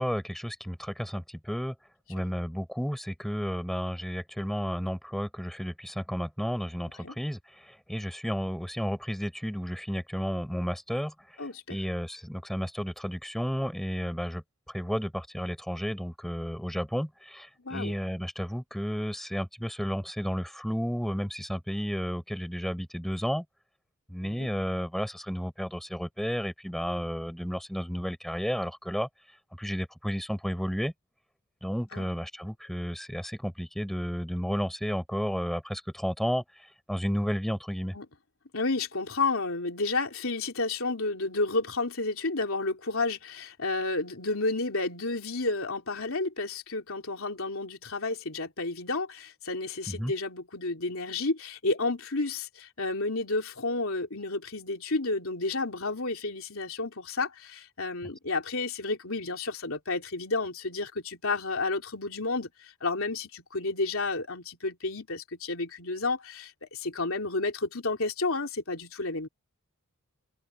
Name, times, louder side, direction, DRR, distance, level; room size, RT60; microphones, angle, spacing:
voice 1, 0.0-1.7 2.1-11.1 11.7-23.4 24.1-29.1 29.6-30.9 31.6-36.4 36.9-37.9 49.9-50.1, equal, ahead, 5.4 m, -32 dB
voice 2, 11.4-11.8 17.6-18.0 24.2-24.5 31.9-32.1 37.9-38.1 38.5-69.3, left 3 dB, 65° left, 3.5 m, -31 dB
open air
head